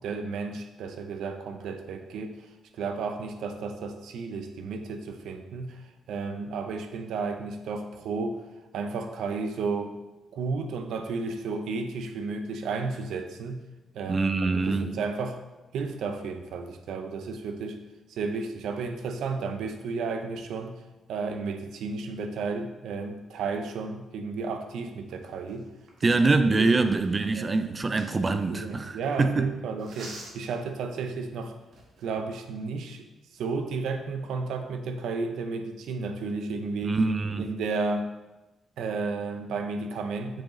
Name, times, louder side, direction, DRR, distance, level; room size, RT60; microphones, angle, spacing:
voice 1, 0.0-2.4 2.7-8.4 8.7-10.0 10.3-13.6 13.9-15.4 15.7-17.8 18.1-20.8 21.1-25.7 26.0-26.1 26.5-26.8 27.4-27.8 28.3-31.5 32.0-33.1 33.3-37.0 37.4-38.1 38.8-40.4, right 4 dB, 85° right, 6 dB, 0.6 m, -33 dB
voice 2, 14.1-14.9 26.0-29.5 36.8-37.5, right 3 dB, 20° right, 9 dB, 0.3 m, -24 dB
sound 1, 25.1-29.1 29.8-30.6 31.2-31.3 31.6-32.2, right 2 dB, 70° right, 1.3 m, -48 dB
7.4 x 4.8 x 3.1 m, 1.1 s
cardioid pair, 170°, 0 cm